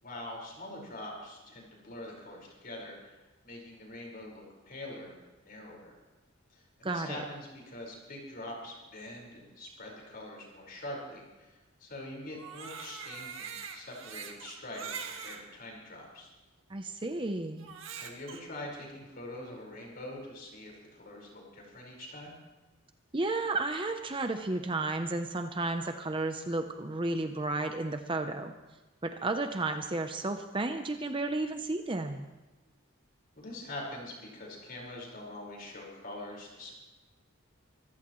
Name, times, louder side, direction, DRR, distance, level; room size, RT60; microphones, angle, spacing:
voice 1, 0.0-3.2 3.4-5.2 5.4-5.9 6.5-16.3 17.9-22.3 33.3-36.7, left 1 dB, 45° left, -1 dB, 4.9 m, -44 dB
voice 2, 6.8-7.2 16.7-17.7 23.1-28.5 29.0-32.2, right 2 dB, 25° right, 6 dB, 0.7 m, -32 dB
Crying sobbing, 12.3-15.4 16.2-16.3 17.6-18.4, right 6 dB, 65° right, 1.7 m, -42 dB
25.0 x 14.5 x 3.1 m, 1.1 s
head